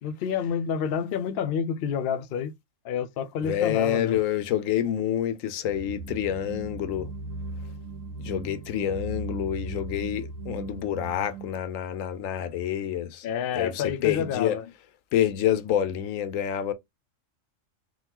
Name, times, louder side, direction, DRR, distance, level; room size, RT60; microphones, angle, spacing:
voice 1, 0.0-2.5 2.8-4.2 13.2-14.7, left 7 dB, 65° left, 0.6 m, -29 dB
voice 2, 3.4-7.1 8.2-13.3 13.5-14.6 15.1-16.7, left 10 dB, 80° left, 1.0 m, -27 dB
sound 1, 5.7-11.5, right 3 dB, 75° right, 1.0 m, -37 dB
3.8 x 2.3 x 2.8 m
omnidirectional pair, 1.4 m